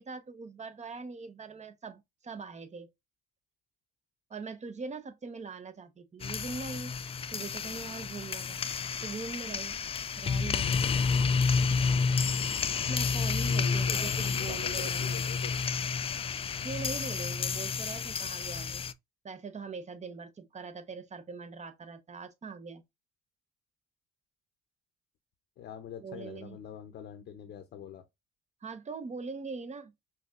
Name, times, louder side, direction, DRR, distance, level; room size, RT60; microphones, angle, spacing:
voice 1, 0.0-2.9 4.3-8.6 9.0-9.8 10.2-10.7 12.9-15.2 16.6-18.8 19.2-22.8 26.0-26.6 28.6-29.9, right 4 dB, 35° right, 1.0 m, -42 dB
sound 1, 6.2-18.9, left 5 dB, 30° left, 0.4 m, -30 dB
voice 2, 13.5-15.6 25.6-28.0, left 9 dB, 55° left, 0.8 m, -44 dB
5.7 x 2.8 x 2.4 m
hypercardioid pair, 60°, 21 cm